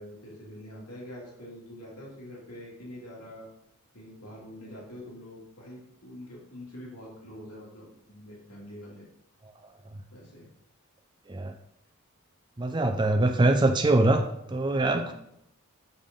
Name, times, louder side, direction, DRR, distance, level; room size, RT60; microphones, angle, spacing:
voice 1, 0.0-3.5 3.9-9.0 10.1-10.5 14.8-15.1, left 1 dB, 90° left, -5 dB, 2.5 m, -45 dB
voice 2, 12.6-15.1, right 2 dB, 20° right, 5 dB, 0.4 m, -23 dB
6.6 x 5.6 x 3.7 m, 0.78 s
head